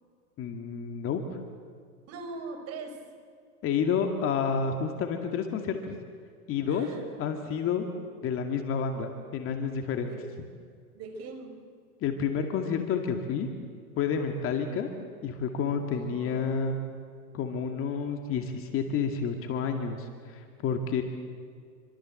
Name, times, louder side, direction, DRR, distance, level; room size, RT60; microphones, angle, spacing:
voice 1, 0.4-1.2 3.6-6.0 6.5-6.9 7.2-7.9 8.2-10.1 12.0-13.5 14.0-14.9 15.2-16.8 17.3-21.0, left 6 dB, 25° left, 5 dB, 2.3 m, -29 dB
voice 2, 2.1-3.0 6.7-7.0 10.0-10.3 10.9-11.7 15.9-16.7, right 3 dB, 30° right, 6 dB, 5.0 m, -41 dB
27.0 x 25.5 x 7.8 m, 2.1 s
hypercardioid pair, 135°, 47 cm